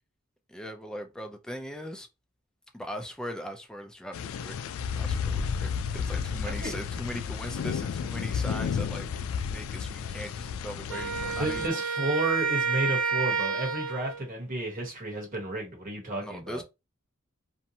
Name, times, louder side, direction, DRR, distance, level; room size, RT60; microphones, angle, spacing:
voice 1, 0.5-2.1 2.7-4.6 4.9-9.1 9.5-11.8 16.2-16.6, equal, 5° left, 0.4 m, -40 dB
sound 1, 4.1-11.7, left 6 dB, 75° left, 0.3 m, -32 dB
Wind instrument woodwind instrument, 10.9-14.2, right 5 dB, 75° right, 0.8 m, -29 dB
voice 2, 11.4-16.6, right 2 dB, 40° right, 1.1 m, -32 dB
2.6 x 2.1 x 2.8 m
head